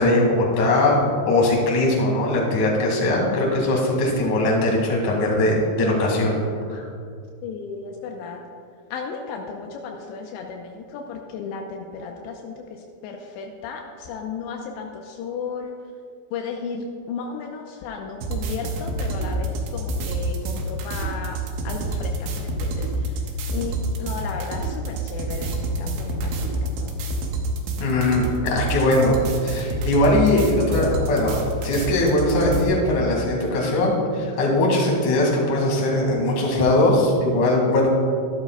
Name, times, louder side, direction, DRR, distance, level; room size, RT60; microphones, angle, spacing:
voice 1, 0.0-6.4 6.7-6.8 27.8-37.9, left 1 dB, 50° left, -2 dB, 2.9 m, -20 dB
voice 2, 7.4-8.4 8.9-12.5 13.0-15.7 16.3-21.4 21.7-22.9 23.5-26.9, left 5 dB, 85° left, 2 dB, 2.8 m, -34 dB
sound 1, 18.2-32.6, right 1 dB, 80° right, 3.3 m, -28 dB
15.0 x 12.0 x 2.2 m, 2.3 s
omnidirectional pair, 5.2 m